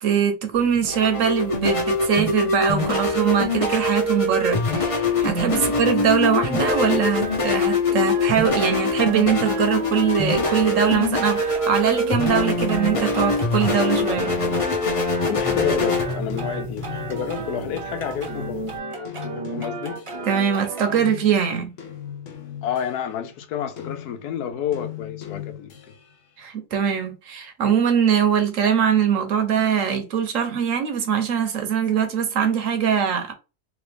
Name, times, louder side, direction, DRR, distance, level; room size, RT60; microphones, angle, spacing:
voice 1, 0.0-14.3 20.3-21.7 26.4-33.3, right 7 dB, 65° right, 1.0 m, -22 dB
sound 1, 0.5-18.8, left 2 dB, 30° left, 0.6 m, -24 dB
sound 2, 6.2-21.0, right 3 dB, 40° right, 0.4 m, -34 dB
voice 2, 15.3-18.8 19.3-20.0 22.6-25.9, left 8 dB, 90° left, 1.2 m, -30 dB
sound 3, 15.5-17.7 18.1-20.5 20.9-26.2, left 11 dB, 60° left, 1.1 m, -39 dB
3.2 x 2.9 x 3.3 m
omnidirectional pair, 1.6 m